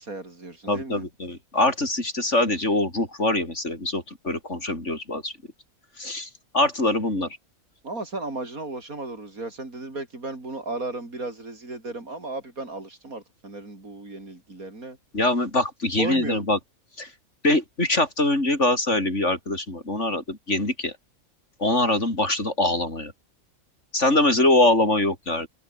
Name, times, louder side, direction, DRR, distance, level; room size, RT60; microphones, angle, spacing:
voice 1, 0.0-1.0 7.8-15.0 16.0-16.4, right 2 dB, 85° right, 5.6 m, -35 dB
voice 2, 0.7-5.3 6.0-7.4 15.1-16.6 17.0-17.1 17.4-20.9 21.6-23.1 23.9-25.5, left 2 dB, 55° left, 6.1 m, -23 dB
open air
omnidirectional pair, 1.5 m